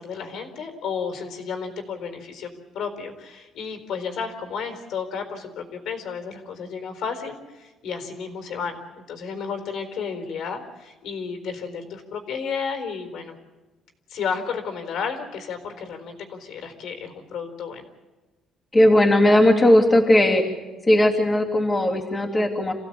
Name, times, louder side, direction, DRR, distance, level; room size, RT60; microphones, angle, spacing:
voice 1, 0.0-2.5 2.7-13.3 14.1-17.8, left 6 dB, 70° left, 5 dB, 4.0 m, -32 dB
voice 2, 18.7-20.4 20.9-22.7, left 1 dB, 15° left, -2 dB, 3.1 m, -17 dB
27.5 x 16.0 x 8.7 m, 1.2 s
cardioid pair, 125°, 0 cm